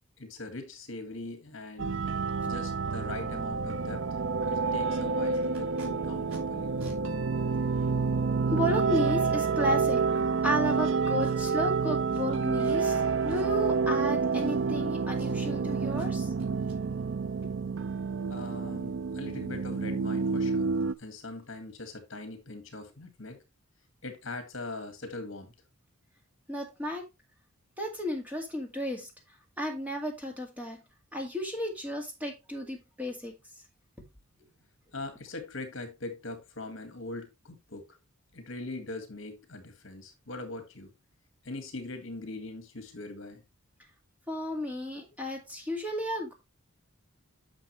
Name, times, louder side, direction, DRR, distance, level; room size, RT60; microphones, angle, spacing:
voice 1, 0.2-2.0 2.4-4.2 4.5-6.8 18.3-20.7 21.0-23.4 24.0-25.5 34.9-37.8 38.3-40.9 41.4-43.4, left 2 dB, 65° left, 1.9 m, -41 dB
sound 1, 1.8-20.9, right 5 dB, 60° right, 0.5 m, -29 dB
Packing tape duct tape, 5.3-5.9 6.3-6.4 6.8-7.0 7.8-7.9 11.2-11.6 12.1-12.2 12.6-12.9 13.3-13.7 14.3-14.8 15.1-15.6 15.9-16.1 16.4-16.8 19.8-19.9 20.2-20.4 20.7-20.9 21.2-21.4 21.7-21.8, right 1 dB, 80° right, 4.3 m, -50 dB
voice 2, 8.5-10.1 10.4-16.3 26.5-27.0 27.8-29.1 29.6-30.8 31.1-33.3 44.3-46.3, equal, 5° right, 2.1 m, -33 dB
9.8 x 6.1 x 3.2 m
head